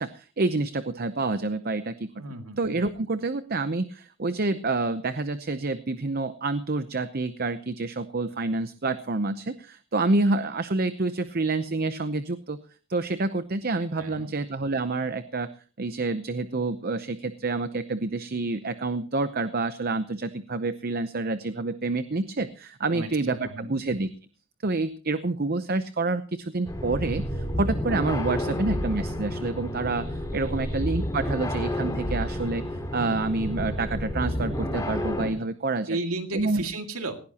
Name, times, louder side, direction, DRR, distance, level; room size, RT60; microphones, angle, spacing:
voice 1, 0.0-2.1 2.6-12.6 12.9-15.5 15.8-24.1 24.6-36.0 36.3-36.6, right 3 dB, 45° right, 11 dB, 0.7 m, -28 dB
voice 2, 2.2-2.6 14.0-14.3 22.9-23.1 23.4-23.8 28.5-28.6 30.4-30.7 35.9-37.2, right 2 dB, 80° right, 5 dB, 2.2 m, -34 dB
sound 1, 26.7-35.3, left 1 dB, 15° left, 2.7 m, -30 dB
19.0 x 16.5 x 2.9 m, 0.37 s
head